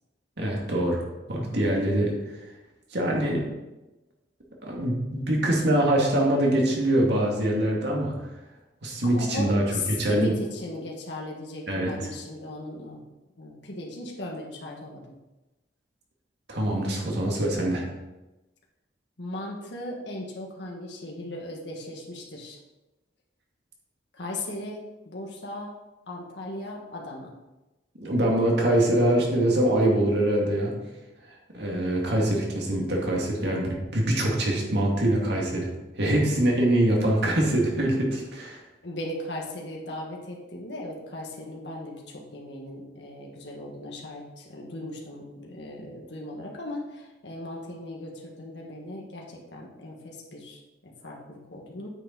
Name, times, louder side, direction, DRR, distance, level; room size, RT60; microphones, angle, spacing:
voice 1, 0.4-1.0 1.3-2.1 2.9-3.4 4.6-8.1 8.8-10.3 11.7-11.9 16.5-17.8 28.0-30.7 31.5-35.7 35.9-38.6, right 1 dB, 65° right, -1 dB, 2.3 m, -24 dB
voice 2, 9.0-13.0 13.4-15.1 19.2-22.6 24.1-25.7 26.1-27.3 38.8-51.9, left 1 dB, 70° left, -1 dB, 1.7 m, -37 dB
8.9 x 6.8 x 4.0 m, 1.0 s
head